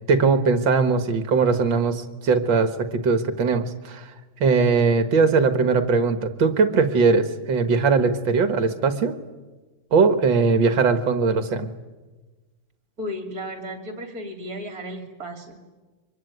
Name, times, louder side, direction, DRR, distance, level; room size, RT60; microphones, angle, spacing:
voice 1, 0.1-4.0 4.4-9.1 9.9-11.7, right 4 dB, 70° right, 10 dB, 2.2 m, -20 dB
voice 2, 13.0-15.7, equal, 45° right, 5 dB, 3.3 m, -34 dB
24.5 x 22.0 x 9.4 m, 1.3 s
omnidirectional pair, 2.2 m